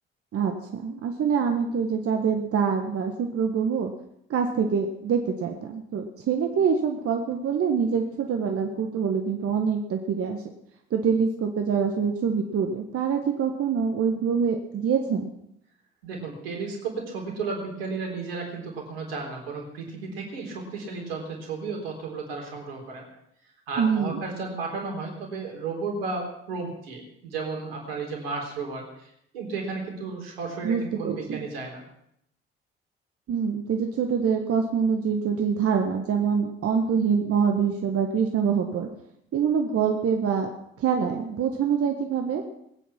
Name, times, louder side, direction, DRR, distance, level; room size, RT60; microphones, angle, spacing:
voice 1, 0.3-3.9 4.3-10.4 10.9-15.3 23.8-24.2 30.6-31.4 33.3-38.9 39.3-40.5 40.8-42.4, right 6 dB, 50° right, 4 dB, 1.6 m, -25 dB
voice 2, 16.0-23.1 23.7-29.1 29.3-31.8, right 4 dB, 85° right, 0 dB, 3.8 m, -33 dB
21.0 x 9.3 x 6.0 m, 0.75 s
hypercardioid pair, 55°, 29 cm